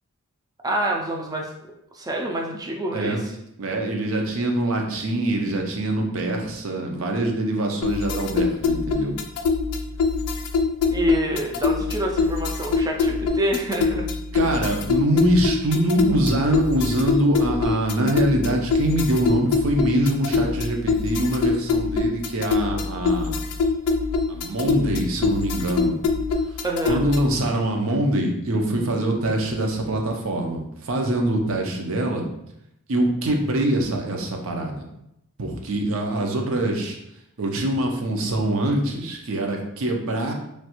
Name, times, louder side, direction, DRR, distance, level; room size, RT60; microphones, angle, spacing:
voice 1, 0.6-1.5 1.9-3.2 10.9-14.1 26.6-27.1, right 1 dB, 15° right, 0 dB, 0.4 m, -26 dB
voice 2, 3.6-9.1 14.3-23.3 24.3-26.0 26.9-32.2 32.9-34.9 35.4-37.0 37.4-40.3, right 1 dB, 65° right, 2 dB, 0.6 m, -24 dB
sound 1, 7.8-27.4, left 4 dB, 90° left, 0.4 m, -24 dB
3.1 x 2.4 x 2.9 m, 0.80 s
head